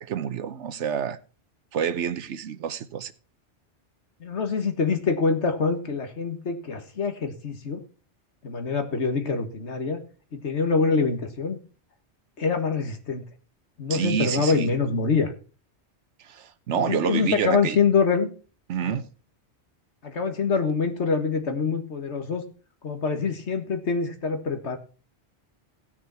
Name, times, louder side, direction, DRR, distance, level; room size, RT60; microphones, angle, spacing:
voice 1, 0.0-1.2 1.7-3.1 13.9-14.7 16.2-17.8 18.7-19.0, right 8 dB, 90° right, 1.1 m, -28 dB
voice 2, 4.2-7.8 8.4-10.0 10.3-11.6 12.4-13.2 13.8-15.3 16.8-18.3 18.8-19.0 20.0-22.4 22.8-24.8, left 5 dB, 75° left, 1.8 m, -25 dB
16.5 x 6.3 x 4.4 m
omnidirectional pair, 1.2 m